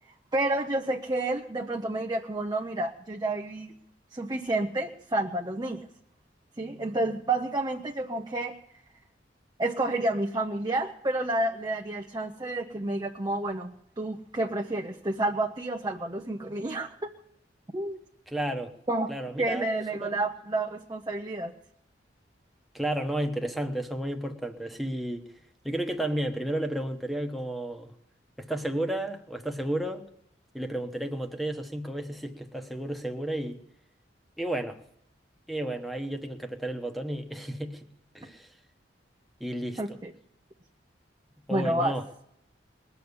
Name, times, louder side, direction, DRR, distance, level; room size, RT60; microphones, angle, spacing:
voice 1, 0.3-3.7 4.1-5.8 6.6-8.6 9.6-16.9 17.7-18.0 18.9-19.1 19.4-21.5 39.8-40.1 41.5-42.0, right 2 dB, 25° right, 2 dB, 0.8 m, -30 dB
voice 2, 18.3-18.7 19.1-20.2 22.7-25.2 25.6-27.9 28.4-30.1 30.5-33.6 34.4-34.8 35.5-37.9 38.1-38.5 39.4-40.0 41.5-42.0, right 1 dB, ahead, 6 dB, 1.2 m, -32 dB
20.5 x 7.0 x 9.7 m, 0.76 s
head